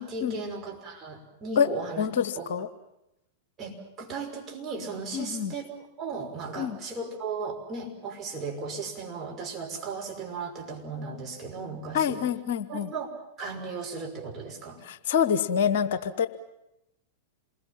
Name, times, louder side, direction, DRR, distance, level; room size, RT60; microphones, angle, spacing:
voice 1, 0.0-2.1 2.4-2.5 3.6-12.2 12.7-13.1 13.4-14.8, right 4 dB, 25° right, 1 dB, 5.8 m, -36 dB
voice 2, 2.0-2.7 5.1-5.5 6.6-6.8 11.9-12.9 14.8-16.3, left 7 dB, 55° left, 13 dB, 1.1 m, -26 dB
27.5 x 21.0 x 7.5 m, 0.90 s
figure-of-eight pair, 95°, 0 cm